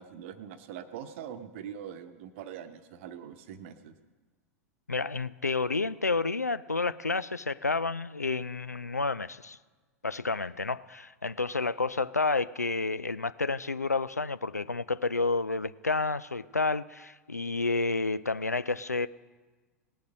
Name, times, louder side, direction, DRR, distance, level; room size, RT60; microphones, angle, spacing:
voice 1, 0.0-3.9, right 9 dB, 50° right, 10 dB, 0.9 m, -43 dB
voice 2, 4.9-9.6 10.0-19.1, left 3 dB, 85° left, 16 dB, 0.4 m, -30 dB
18.5 x 6.6 x 6.2 m, 1.3 s
figure-of-eight pair, 90°, 8 cm